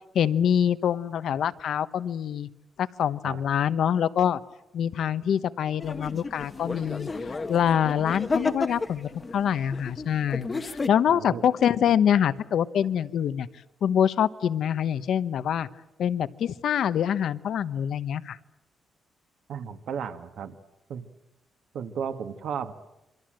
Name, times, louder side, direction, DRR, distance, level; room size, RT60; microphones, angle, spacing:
voice 1, 0.1-2.5 2.8-4.4 4.7-7.1 7.5-13.5 13.8-15.7 16.0-18.4, left 9 dB, 60° left, 14 dB, 1.0 m, -25 dB
sound 1, 5.8-10.9, left 3 dB, 20° left, 1.1 m, -32 dB
voice 2, 11.1-11.4 19.5-20.5 20.9-21.1 21.7-22.7, right 7 dB, 65° right, 7 dB, 1.9 m, -34 dB
27.5 x 24.5 x 7.7 m, 0.93 s
wide cardioid pair, 175°, 0 cm